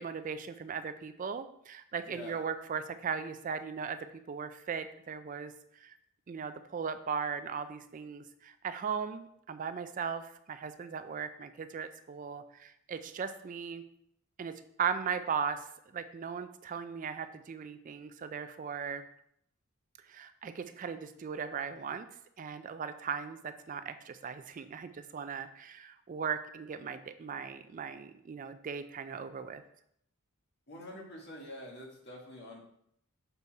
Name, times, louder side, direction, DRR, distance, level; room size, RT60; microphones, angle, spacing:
voice 1, 0.0-6.0 6.3-13.8 14.4-15.7 15.9-19.0 20.1-22.1 22.4-29.6, right 6 dB, 35° right, 10 dB, 0.3 m, -38 dB
voice 2, 2.0-2.4 30.7-32.6, left 1 dB, 50° left, -1 dB, 1.7 m, -46 dB
6.8 x 4.2 x 4.6 m, 0.72 s
head